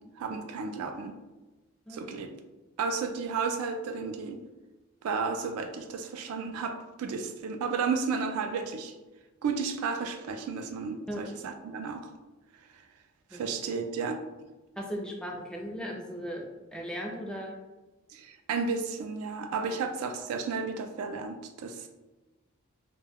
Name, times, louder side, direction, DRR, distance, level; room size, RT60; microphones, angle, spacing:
voice 1, 0.2-1.2 1.9-2.3 2.8-4.4 5.0-8.9 9.4-12.0 13.3-14.2 18.1-21.9, right 5 dB, 85° right, 7 dB, 0.3 m, -33 dB
voice 2, 14.8-16.5 16.7-17.6 19.7-19.8, equal, 5° left, 0 dB, 0.4 m, -37 dB
2.2 x 2.1 x 3.4 m, 1.1 s
head